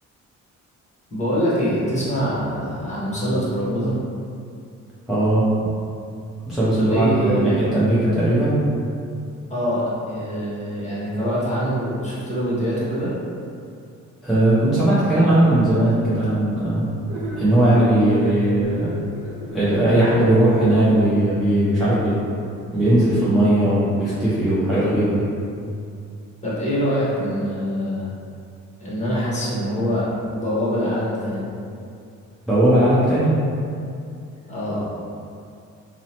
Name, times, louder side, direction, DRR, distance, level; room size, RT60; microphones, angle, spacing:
voice 1, 1.1-4.0 6.8-7.6 9.5-13.1 26.4-28.1 28.8-30.1 30.3-31.5 34.5-34.8, equal, 25° left, -9 dB, 1.0 m, -24 dB
voice 2, 5.1-5.4 6.5-8.6 14.2-16.9 17.4-18.9 19.5-22.2 22.7-25.3 32.5-33.4, right 1 dB, ahead, -12 dB, 0.6 m, -18 dB
sound 1, 17.1-21.2, right 2 dB, 75° right, 0.6 m, -34 dB
2.7 x 2.0 x 2.8 m, 2.4 s
cardioid pair, 90°, 30 cm